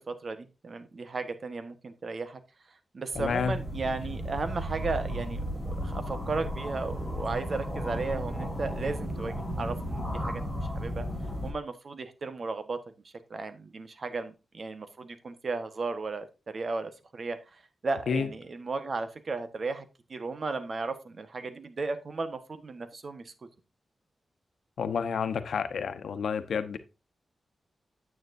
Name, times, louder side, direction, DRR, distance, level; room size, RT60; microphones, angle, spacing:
voice 1, 0.1-2.4 2.9-5.4 5.6-10.4 10.7-11.1 11.4-12.8 13.3-19.8 20.1-23.3, right 3 dB, 50° right, 1.4 m, -35 dB
voice 2, 3.1-3.6 18.1-18.3 24.8-26.8, left 6 dB, 85° left, 1.0 m, -29 dB
sound 1, 3.1-11.5, equal, 15° right, 6.0 m, -34 dB
9.5 x 8.6 x 2.7 m
cardioid pair, 85°, 0 cm